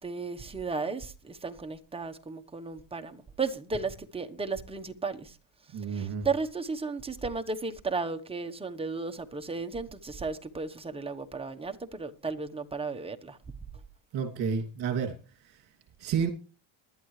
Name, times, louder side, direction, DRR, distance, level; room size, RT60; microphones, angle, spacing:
voice 1, 0.0-5.4 5.9-13.4, right 4 dB, 10° right, 1.2 m, -34 dB
voice 2, 5.7-6.3 14.1-15.1 15.4-15.6 16.0-16.3, right 6 dB, 55° right, 2.8 m, -30 dB
20.5 x 11.5 x 3.3 m
cardioid pair, 145°, 46 cm